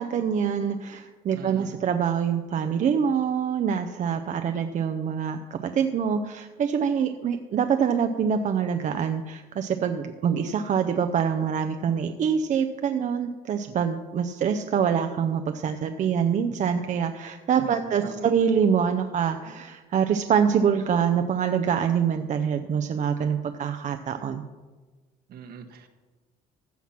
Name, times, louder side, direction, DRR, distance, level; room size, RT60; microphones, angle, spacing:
voice 1, 0.0-24.4, right 7 dB, 45° right, 7 dB, 0.6 m, -25 dB
voice 2, 1.3-1.8 17.6-18.3 25.3-25.9, right 6 dB, 65° right, 7 dB, 1.3 m, -41 dB
15.5 x 5.9 x 5.9 m, 1.3 s
cardioid pair, 110°, 17 cm